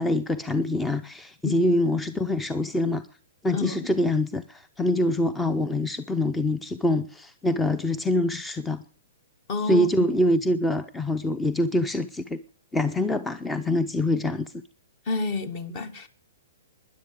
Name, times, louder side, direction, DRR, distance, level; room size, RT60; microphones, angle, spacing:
voice 1, 0.0-3.0 3.4-8.8 9.6-12.4 12.7-14.5, left 1 dB, 10° left, 0.6 m, -25 dB
voice 2, 3.5-3.9 9.5-10.1 15.1-16.1, left 3 dB, 40° left, 2.0 m, -29 dB
12.0 x 10.5 x 8.3 m
hypercardioid pair, 125°, 0 cm